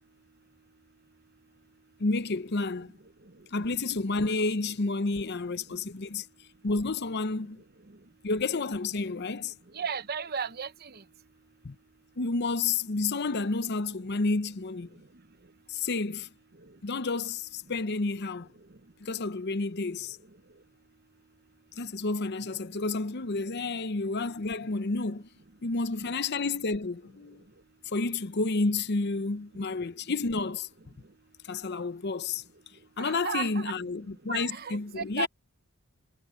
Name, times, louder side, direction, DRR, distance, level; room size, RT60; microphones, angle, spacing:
voice 1, 2.0-2.9 3.5-6.3 6.6-7.6 8.2-9.5 11.6-11.7 12.2-14.9 15.7-16.3 16.8-18.5 19.0-20.2 21.8-25.3 25.6-27.4 27.9-30.7 31.4-32.4 33.0-35.3, left 3 dB, 50° left, 0.7 m, -30 dB
voice 2, 9.7-11.0 33.0-33.6 34.3-35.3, right 6 dB, 45° right, 0.9 m, -34 dB
head